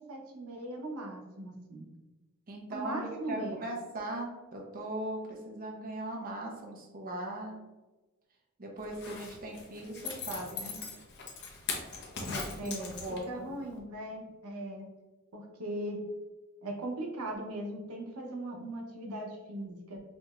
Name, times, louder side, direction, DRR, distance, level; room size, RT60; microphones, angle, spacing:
voice 1, 0.1-1.9 2.7-3.6 12.5-12.9 13.3-14.8 15.3-16.0 16.6-20.0, right 1 dB, 90° right, 1 dB, 0.7 m, -39 dB
voice 2, 2.5-7.6 8.6-10.8 12.2-12.7 13.0-13.5, right 1 dB, 40° right, 0 dB, 0.7 m, -39 dB
Zipper (clothing), 8.8-13.4 13.8-13.9, left 4 dB, 55° left, 0.8 m, -40 dB
5.0 x 2.8 x 2.4 m, 1.2 s
head